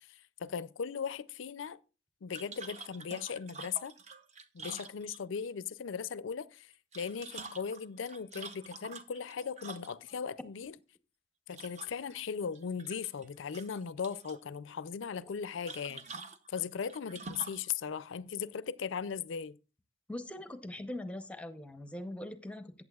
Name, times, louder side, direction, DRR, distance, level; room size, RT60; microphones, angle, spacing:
voice 1, 0.0-1.8 2.2-3.9 4.5-10.7 11.5-16.1 16.5-19.6, left 6 dB, 70° left, 0.4 m, -38 dB
sound 1, 2.3-5.5 6.7-10.2 11.5-12.2 12.6-13.3 13.5-14.4 15.7-17.7, right 4 dB, 35° right, 0.7 m, -47 dB
voice 2, 20.1-22.9, left 1 dB, 5° left, 0.7 m, -42 dB
14.0 x 8.9 x 2.3 m
head